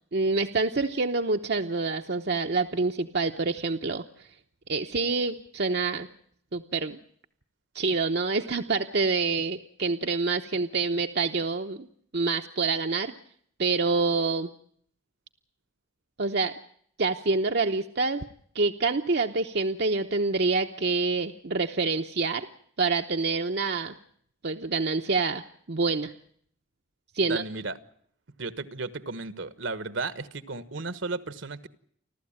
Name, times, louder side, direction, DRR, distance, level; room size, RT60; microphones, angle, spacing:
voice 1, 0.1-4.3 4.7-6.1 6.5-7.0 7.7-11.9 12.1-13.1 13.6-14.5 16.2-16.5 17.0-18.2 18.5-22.5 22.8-23.9 24.4-25.4 25.7-26.1 27.1-27.4, right 3 dB, 55° right, 0.9 m, -27 dB
voice 2, 27.2-27.8 28.4-31.7, right 3 dB, 70° right, 1.3 m, -34 dB
30.0 x 12.5 x 8.7 m
head